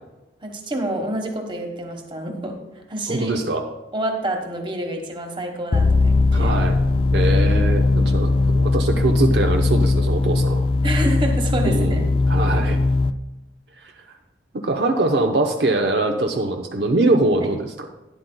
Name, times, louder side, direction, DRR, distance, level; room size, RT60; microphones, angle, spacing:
voice 1, 0.4-2.5 2.9-3.4 3.9-6.5 10.8-12.0 17.4-17.5, right 1 dB, 25° right, 3 dB, 1.3 m, -27 dB
voice 2, 3.1-3.6 6.3-6.8 7.1-10.6 11.6-12.8 13.8-13.9 14.5-17.9, right 2 dB, 65° right, 3 dB, 0.8 m, -22 dB
sound 1, 5.7-13.1, left 3 dB, 30° left, 0.3 m, -19 dB
11.5 x 10.5 x 2.3 m, 1.0 s
head